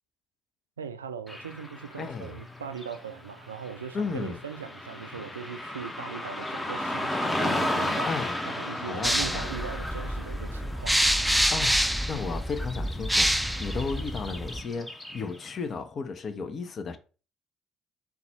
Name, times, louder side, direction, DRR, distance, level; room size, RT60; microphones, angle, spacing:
voice 1, 0.8-8.1 8.5-11.0, right 6 dB, 85° right, 0.3 m, -39 dB
Car passing by / Traffic noise roadway noise, 1.3-15.5, left 1 dB, 15° left, 0.9 m, -35 dB
voice 2, 2.0-2.4 3.9-4.4 8.1-8.3 8.9-9.5 11.5-11.8 12.1-17.0, left 5 dB, 45° left, 0.6 m, -34 dB
sound 1, 9.0-14.6, equal, ahead, 0.4 m, -27 dB
4.0 x 2.3 x 4.1 m
hypercardioid pair, 55°, 0 cm